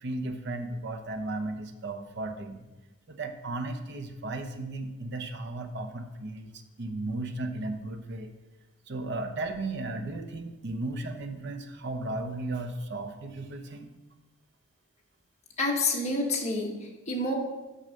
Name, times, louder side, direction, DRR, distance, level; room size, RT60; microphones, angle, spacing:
voice 1, 0.0-2.6 3.1-6.5 6.8-8.3 8.9-13.9, right 2 dB, 60° right, 7 dB, 0.8 m, -35 dB
voice 2, 15.6-17.3, left 2 dB, 30° left, -1 dB, 1.4 m, -28 dB
6.3 x 5.6 x 6.6 m, 1.1 s
head